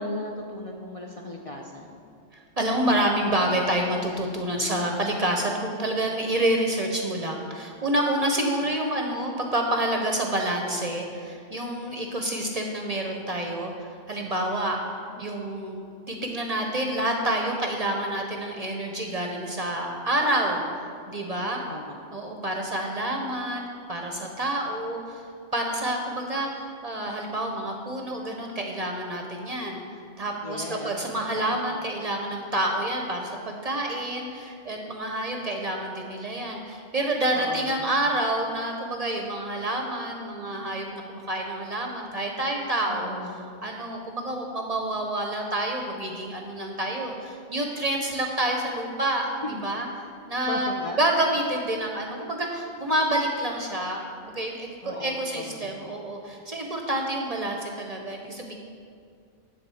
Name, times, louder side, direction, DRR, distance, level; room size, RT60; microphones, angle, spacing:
voice 1, 0.0-2.0 8.6-8.7 15.1-15.5 21.7-22.0 30.4-31.3 31.5-31.7 37.3-37.9 42.9-43.4 49.4-49.6 50.5-51.0 54.8-55.9, left 1 dB, 40° left, -1 dB, 0.6 m, -37 dB
voice 2, 2.3-14.8 15.2-15.8 16.1-20.6 21.1-21.6 22.1-25.2 25.5-29.8 30.2-43.1 43.6-49.9 50.3-50.7 51.0-58.5, right 1 dB, 40° right, 1 dB, 0.7 m, -28 dB
10.0 x 3.9 x 7.0 m, 2.3 s
omnidirectional pair, 1.2 m